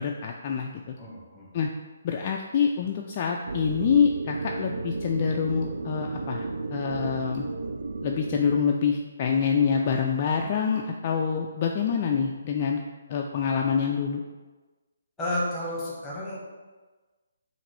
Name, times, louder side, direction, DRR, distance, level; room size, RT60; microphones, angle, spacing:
voice 1, 0.0-0.9 1.5-1.7 2.0-7.4 8.0-12.8 13.1-14.2, left 6 dB, 35° left, 1 dB, 0.3 m, -26 dB
voice 2, 1.0-1.5 15.2-16.4, left 1 dB, 5° left, -6 dB, 1.4 m, -31 dB
sound 1, 3.5-8.6, right 3 dB, 75° right, 0.3 m, -33 dB
5.7 x 2.5 x 3.3 m, 1.3 s
figure-of-eight pair, 145°, 0 cm